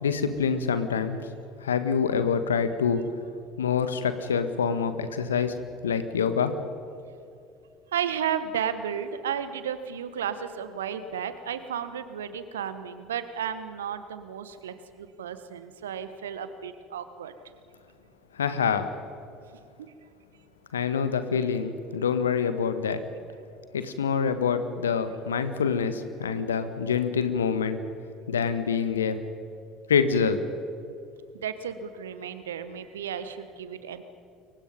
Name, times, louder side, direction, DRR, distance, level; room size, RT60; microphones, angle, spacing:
voice 1, 0.0-1.2 1.6-3.0 3.6-5.5 5.8-6.6 18.3-18.9 20.7-23.0 23.7-27.8 28.3-29.2 29.9-30.4, left 6 dB, 75° left, 10 dB, 1.5 m, -26 dB
voice 2, 7.9-17.3 31.4-34.0, right 8 dB, 75° right, 11 dB, 1.4 m, -33 dB
28.5 x 23.5 x 5.3 m, 2.5 s
figure-of-eight pair, 60°, 0 cm